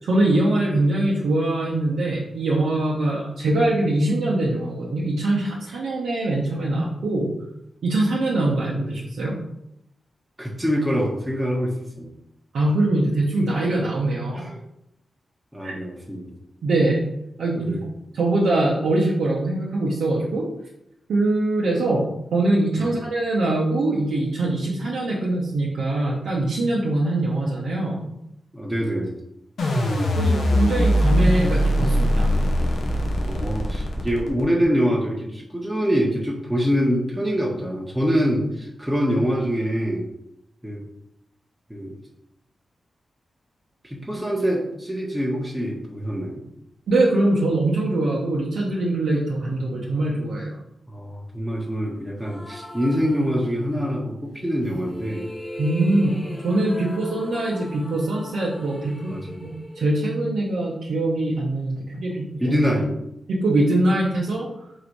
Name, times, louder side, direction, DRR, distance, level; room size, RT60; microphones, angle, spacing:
voice 1, 0.0-7.3 7.8-9.3 12.5-14.5 15.6-15.7 16.6-17.0 17.4-17.8 18.1-20.5 21.1-22.0 22.3-28.1 30.2-32.3 46.9-50.6 55.6-56.1 56.4-59.1 59.4-59.5 59.7-62.6 63.3-64.5, right 2 dB, 85° right, -5 dB, 0.7 m, -22 dB
voice 2, 10.4-12.1 14.4-14.6 15.5-16.3 17.5-17.8 22.8-22.9 28.5-29.2 33.2-40.1 40.6-40.8 41.7-41.9 43.8-46.4 50.9-55.3 59.1-59.4 62.4-62.9, equal, 5° right, -3 dB, 1.0 m, -25 dB
sound 1, 29.6-34.6, equal, 80° left, 0.8 m, -21 dB
sound 2, 52.2-53.9 54.6-60.7, left 1 dB, 20° left, 0.8 m, -39 dB
3.9 x 2.6 x 4.6 m, 0.82 s
cardioid pair, 50°, 0 cm